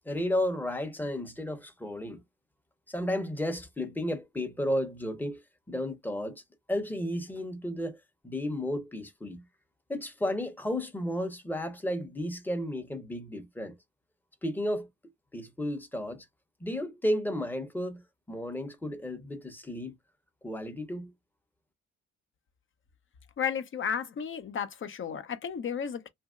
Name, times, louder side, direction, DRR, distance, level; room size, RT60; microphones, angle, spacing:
voice 1, 0.1-2.2 2.9-5.4 5.7-6.4 6.7-9.4 9.9-13.8 14.4-14.9 15.3-16.3 16.6-18.0 18.3-19.9 20.4-21.1, left 1 dB, 5° left, 0.8 m, -33 dB
voice 2, 23.4-26.1, left 7 dB, 40° left, 0.6 m, -33 dB
2.9 x 2.6 x 2.4 m
cardioid pair, 90°, 30 cm